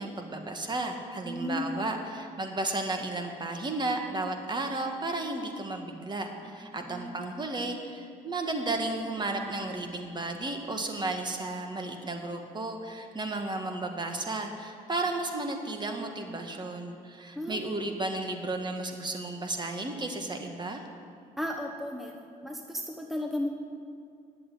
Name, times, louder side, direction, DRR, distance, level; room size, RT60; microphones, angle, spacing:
voice 1, 0.0-20.9, right 2 dB, 30° right, 4 dB, 1.6 m, -33 dB
voice 2, 1.2-1.9 6.4-6.5 6.8-7.2 17.4-17.6 21.4-22.1 22.4-23.5, left 1 dB, ahead, 2 dB, 1.2 m, -34 dB
11.0 x 7.7 x 9.3 m, 2.4 s
cardioid pair, 80°, 15 cm